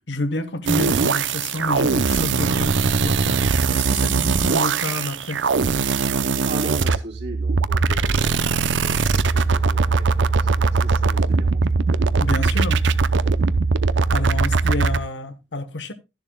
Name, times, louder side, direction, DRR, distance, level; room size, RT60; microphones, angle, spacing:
voice 1, 0.0-3.4 3.7-5.4 12.2-12.8 14.1-15.9, left 2 dB, 70° left, 1.1 m, -29 dB
sound 1, 0.7-15.0, right 4 dB, 90° right, 0.6 m, -20 dB
voice 2, 6.4-11.7, right 2 dB, 70° right, 3.5 m, -38 dB
13.0 x 10.5 x 2.2 m
head